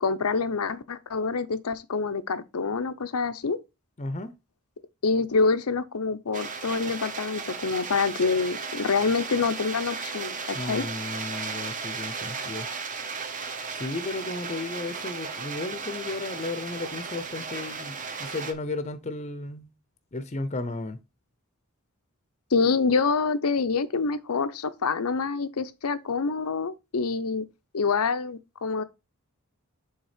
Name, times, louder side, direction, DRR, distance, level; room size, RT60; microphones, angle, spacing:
voice 1, 0.0-3.6 5.0-10.9 22.5-27.5 27.7-28.8, left 4 dB, 85° left, 0.7 m, -26 dB
voice 2, 4.0-4.3 10.5-12.7 13.7-19.7 20.1-21.0, left 2 dB, 30° left, 0.7 m, -34 dB
sound 1, 6.3-18.5, right 5 dB, 35° right, 0.9 m, -35 dB
7.2 x 3.5 x 5.0 m
head